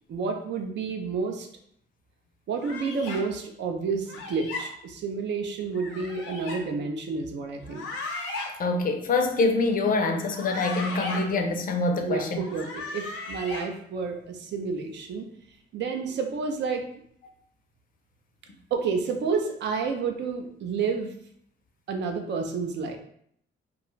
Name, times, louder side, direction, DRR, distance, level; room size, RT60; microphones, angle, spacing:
voice 1, 0.1-1.5 2.5-7.9 12.1-15.3 15.7-16.9 18.7-21.1 21.9-23.0, right 5 dB, 65° right, 4 dB, 0.5 m, -30 dB
sound 1, 2.6-3.2 4.1-4.6 5.7-6.6 7.6-8.5 10.2-11.2 12.3-13.6, left 3 dB, 85° left, 0.7 m, -36 dB
voice 2, 8.6-12.4, left 3 dB, 45° left, 4 dB, 0.5 m, -25 dB
2.4 x 2.2 x 3.0 m, 0.68 s
cardioid pair, 90°, 20 cm